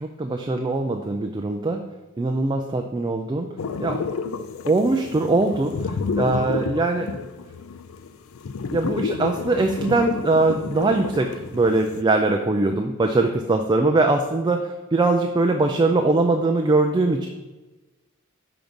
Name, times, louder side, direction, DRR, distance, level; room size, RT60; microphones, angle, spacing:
voice 1, 0.0-1.8 2.2-3.5 3.8-4.0 4.7-7.1 8.7-17.3, right 2 dB, 20° right, 4 dB, 0.3 m, -21 dB
sound 1, 3.6-12.0, left 5 dB, 75° left, 0.4 m, -30 dB
5.9 x 3.9 x 5.1 m, 1.2 s
head